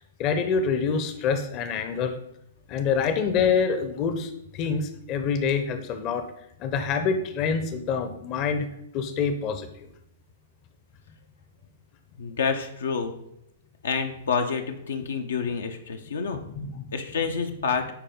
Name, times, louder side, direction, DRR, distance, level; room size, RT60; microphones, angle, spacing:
voice 1, 0.2-2.1 2.7-6.2 6.6-8.7 8.9-9.9 16.5-16.8, left 6 dB, 35° left, 8 dB, 0.8 m, -26 dB
voice 2, 12.2-13.1 13.8-16.4 16.9-17.9, left 5 dB, 70° left, 5 dB, 0.7 m, -28 dB
10.5 x 4.1 x 3.8 m, 0.79 s
figure-of-eight pair, 110°, 0 cm